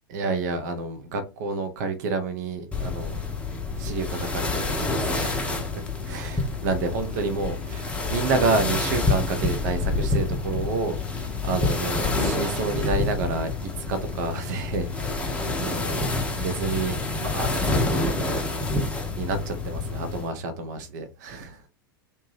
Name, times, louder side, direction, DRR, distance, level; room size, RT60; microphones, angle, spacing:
voice 1, 0.1-3.2 3.8-18.6 19.2-21.6, right 4 dB, 50° right, 0.6 m, -30 dB
sound 1, 2.7-20.3, left 3 dB, 10° left, 0.6 m, -28 dB
2.8 x 2.2 x 3.1 m
figure-of-eight pair, 90°, 12 cm